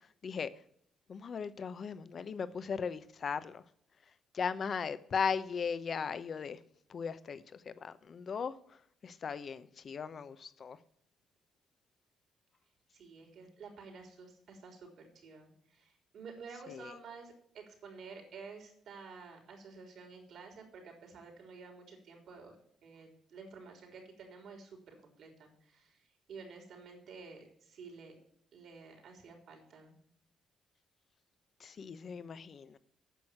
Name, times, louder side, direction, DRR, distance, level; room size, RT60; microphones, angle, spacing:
voice 1, 1.1-3.6 4.3-6.6 6.9-8.6 9.0-10.8 16.7-16.9 31.6-32.8, left 6 dB, 50° left, 0.8 m, -37 dB
voice 2, 12.9-22.6 22.8-28.2 28.5-29.9, right 4 dB, 70° right, 3.9 m, -51 dB
9.3 x 6.3 x 8.6 m
cardioid pair, 90°, 0 cm